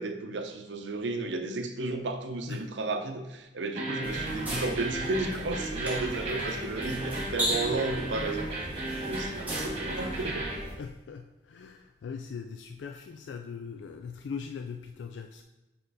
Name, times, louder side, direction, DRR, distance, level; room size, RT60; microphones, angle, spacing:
voice 1, 0.0-8.7 9.0-10.4, right 2 dB, 85° right, 0.6 m, -33 dB
voice 2, 2.5-2.8 10.7-15.4, left 6 dB, 90° left, 0.3 m, -40 dB
sound 1, 3.7-10.6, right 2 dB, 35° right, 1.6 m, -35 dB
sound 2, 4.0-10.7, equal, 10° right, 1.3 m, -37 dB
5.3 x 4.4 x 4.0 m
head